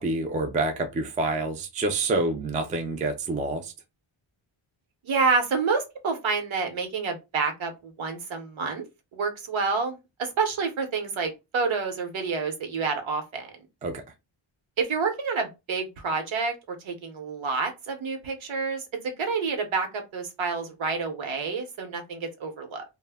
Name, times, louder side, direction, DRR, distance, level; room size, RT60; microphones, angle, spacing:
voice 1, 0.0-3.7 13.8-14.0, right 2 dB, 20° right, 0.3 m, -27 dB
voice 2, 5.0-8.8 9.1-13.5 14.8-22.8, right 4 dB, 70° right, 0.8 m, -28 dB
2.1 x 2.0 x 3.3 m
wide cardioid pair, 155°, 49 cm